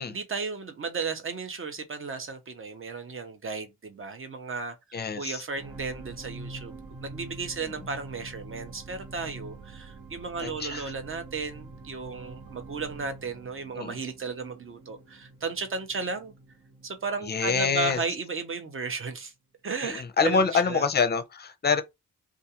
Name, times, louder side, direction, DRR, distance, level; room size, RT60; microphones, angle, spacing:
voice 1, 0.0-16.3 16.8-19.3 19.6-20.9, right 4 dB, 40° right, 0.7 m, -34 dB
voice 2, 4.9-5.4 7.6-7.7 10.4-10.9 13.8-14.0 17.2-18.0 19.8-21.8, left 5 dB, 30° left, 0.5 m, -26 dB
sound 1, 5.5-17.9 18.5-18.6, right 3 dB, 65° right, 1.0 m, -45 dB
2.4 x 2.4 x 2.8 m
cardioid pair, 85°, 32 cm